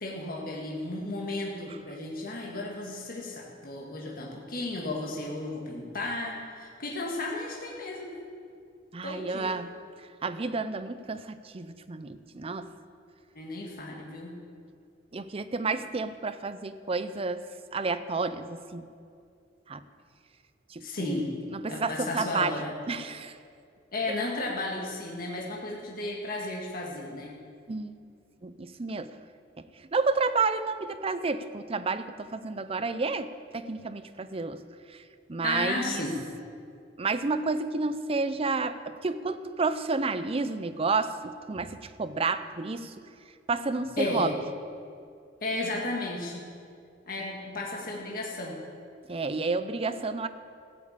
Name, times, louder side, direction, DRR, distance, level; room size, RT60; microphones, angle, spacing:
voice 1, 0.0-8.2 9.0-9.6 13.4-14.3 20.8-21.3 21.7-22.7 23.9-27.4 35.4-36.2 44.0-44.4 45.4-46.5 47.1-48.6, left 2 dB, 50° left, -2 dB, 1.8 m, -34 dB
voice 2, 8.9-9.7 10.2-12.7 15.1-17.4 17.7-18.9 19.7-19.8 20.7-21.1 21.5-22.6 22.9-23.3 27.7-28.0 28.4-29.2 29.9-34.6 34.9-35.0 35.3-36.0 37.0-42.9 43.5-44.3 49.1-50.3, right 4 dB, 30° right, 11 dB, 0.5 m, -30 dB
15.0 x 7.4 x 8.6 m, 2.3 s
head